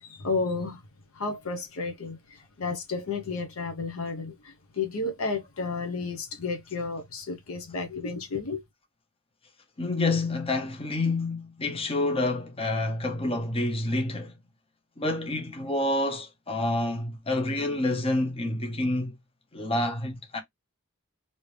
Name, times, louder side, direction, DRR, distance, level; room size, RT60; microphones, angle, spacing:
voice 1, 0.0-0.8 1.1-8.6, left 4 dB, 70° left, 0.8 m, -32 dB
voice 2, 9.8-14.3 15.0-19.1 19.5-20.4, left 2 dB, 25° left, 0.8 m, -28 dB
3.3 x 2.7 x 3.1 m
head